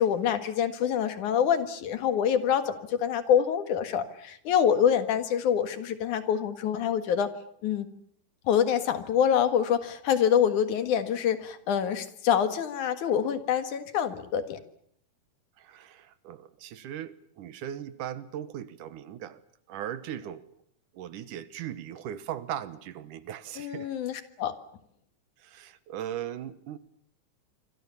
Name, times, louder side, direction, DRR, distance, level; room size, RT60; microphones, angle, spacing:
voice 1, 0.0-7.3 7.6-7.9 8.4-14.6 23.6-24.5, left 8 dB, 75° left, 9 dB, 3.1 m, -26 dB
voice 2, 15.6-19.4 19.7-20.5 20.9-23.9 25.4-26.8, right 10 dB, 85° right, 14 dB, 2.7 m, -38 dB
26.0 x 25.0 x 7.2 m, 0.69 s
omnidirectional pair, 3.6 m